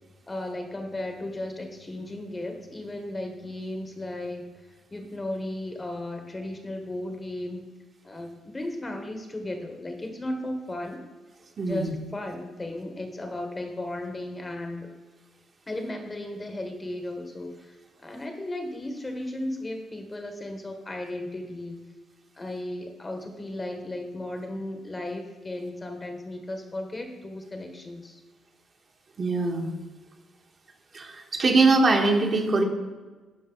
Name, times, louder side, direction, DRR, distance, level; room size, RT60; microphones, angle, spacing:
voice 1, 0.3-4.5 4.9-7.7 8.0-11.1 11.6-14.9 15.7-17.8 18.0-21.8 22.3-28.2, left 1 dB, 20° left, 5 dB, 1.1 m, -35 dB
voice 2, 11.6-11.9 29.2-29.7 30.9-32.6, right 3 dB, 45° right, 1 dB, 1.5 m, -22 dB
11.5 x 5.2 x 3.9 m, 1.3 s
cardioid pair, 90°, 0 cm